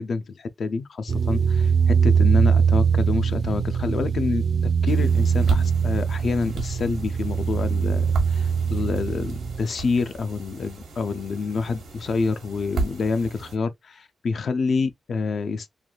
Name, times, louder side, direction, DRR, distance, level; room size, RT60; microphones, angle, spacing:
voice 1, 0.0-15.7, left 4 dB, 55° left, 0.4 m, -27 dB
sound 1, 1.1-9.6, right 6 dB, 60° right, 0.4 m, -22 dB
sound 2, 4.9-13.6, right 3 dB, 85° right, 0.9 m, -34 dB
3.3 x 2.2 x 2.3 m
wide cardioid pair, 135°, 0 cm